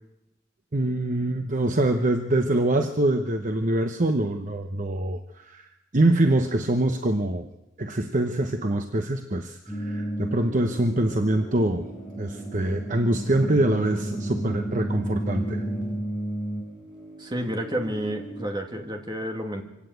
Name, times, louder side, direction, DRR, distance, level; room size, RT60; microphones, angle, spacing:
voice 1, 0.7-5.7 5.9-7.5 7.8-11.8 12.2-15.6, right 1 dB, 40° right, 6 dB, 1.0 m, -24 dB
sound 1, 9.7-18.5, right 1 dB, 5° right, 7.6 m, -33 dB
voice 2, 17.2-19.6, equal, 20° right, 4 dB, 2.3 m, -30 dB
24.5 x 17.0 x 8.1 m, 0.95 s
head